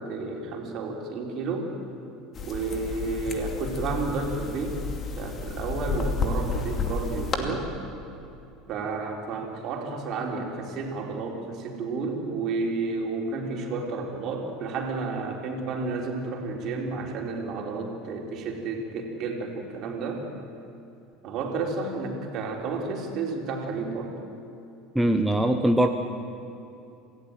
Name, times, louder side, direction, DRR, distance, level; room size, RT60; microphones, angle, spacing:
voice 1, 0.0-1.7 2.4-4.8 5.2-7.7 8.7-20.2 21.2-24.1, right 3 dB, 45° right, 1 dB, 3.8 m, -31 dB
sound 1, 2.3-7.4, left 4 dB, 35° left, 2.5 m, -31 dB
voice 2, 24.9-25.9, right 1 dB, 5° right, 5 dB, 1.1 m, -21 dB
27.5 x 17.0 x 7.8 m, 2.7 s
figure-of-eight pair, 70°, 0 cm